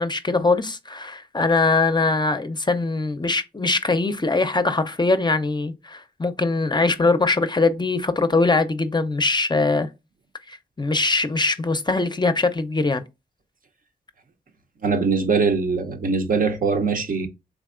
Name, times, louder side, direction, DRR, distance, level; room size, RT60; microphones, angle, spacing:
voice 1, 0.0-9.9 10.5-13.0, left 3 dB, 25° left, 0.5 m, -22 dB
voice 2, 14.8-17.3, right 4 dB, 60° right, 0.7 m, -22 dB
3.6 x 3.3 x 2.4 m
cardioid pair, 50°, 16 cm